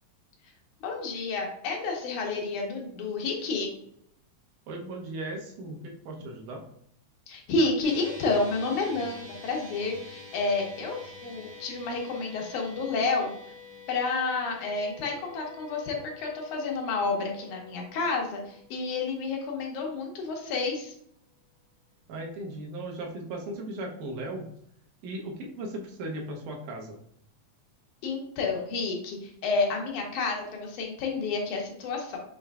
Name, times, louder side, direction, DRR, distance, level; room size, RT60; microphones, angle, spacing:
voice 1, 0.8-3.7 7.3-13.3 13.9-20.9 28.0-32.2, left 3 dB, 80° left, 0 dB, 2.4 m, -30 dB
voice 2, 4.7-6.6 22.1-24.5 25.0-27.0, right 1 dB, 90° right, 0 dB, 2.4 m, -37 dB
sound 1, 7.8-20.3, left 3 dB, 50° right, 2.3 m, -48 dB
6.8 x 3.2 x 2.3 m, 0.69 s
omnidirectional pair, 3.4 m